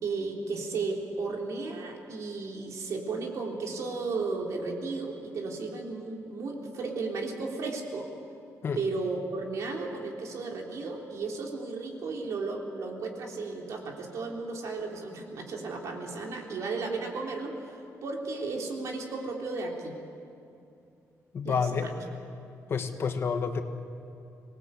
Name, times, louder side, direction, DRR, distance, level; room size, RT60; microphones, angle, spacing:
voice 1, 0.0-8.1 8.8-20.0 21.4-21.9, right 3 dB, 60° right, 0 dB, 3.6 m, -34 dB
voice 2, 21.3-21.9 22.7-23.6, left 6 dB, 45° left, 6 dB, 1.5 m, -28 dB
25.5 x 19.0 x 8.3 m, 2.7 s
wide cardioid pair, 170°, 6 cm